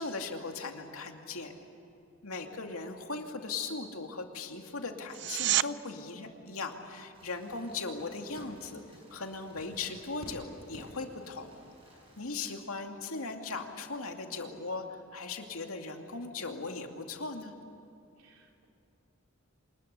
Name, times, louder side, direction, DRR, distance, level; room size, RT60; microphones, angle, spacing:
voice 1, 0.0-1.5 2.2-8.8 9.1-11.5 12.2-14.8 15.1-17.5, left 3 dB, 85° left, 3 dB, 2.6 m, -38 dB
voice 2, 2.4-2.8 7.5-7.7 12.2-12.5 18.2-18.7, right 2 dB, 75° right, 1 dB, 3.8 m, -60 dB
sound 1, 5.1-5.7 17.0-17.1, right 14 dB, 55° right, 0.5 m, -28 dB
sound 2, 7.1-12.2, equal, 25° right, 7.3 m, -53 dB
26.5 x 20.5 x 8.3 m, 2.8 s
head